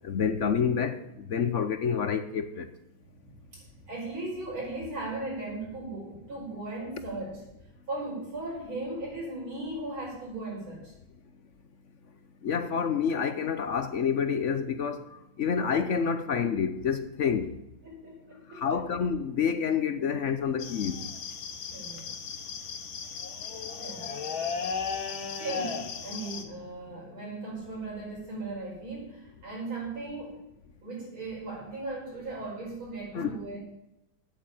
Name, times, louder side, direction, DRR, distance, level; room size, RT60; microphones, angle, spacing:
voice 1, 0.0-2.7 12.4-15.0 15.4-17.5 18.5-21.0 33.1-33.4, left 6 dB, 65° left, 0.7 m, -28 dB
voice 2, 3.2-7.5 7.9-10.9 17.8-18.6 21.7-22.1 23.8-24.1 25.4-30.4 30.8-33.6, right 2 dB, 85° right, 6.4 m, -37 dB
sound 1, 20.6-26.4, left 6 dB, 80° left, 2.2 m, -36 dB
9.3 x 8.8 x 8.8 m
omnidirectional pair, 2.2 m